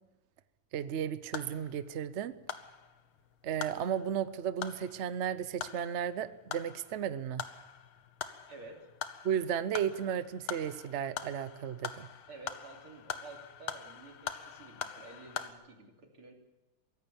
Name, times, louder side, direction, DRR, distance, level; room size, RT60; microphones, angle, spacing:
voice 1, 0.7-2.3 3.4-7.4 9.2-12.1, right 9 dB, 70° right, 14 dB, 0.6 m, -34 dB
sound 1, 0.8-15.5, left 8 dB, 75° left, 2.0 m, -44 dB
voice 2, 8.5-8.9 12.3-16.3, right 3 dB, 85° right, 1 dB, 4.0 m, -51 dB
23.0 x 16.0 x 7.1 m, 1.0 s
omnidirectional pair, 2.3 m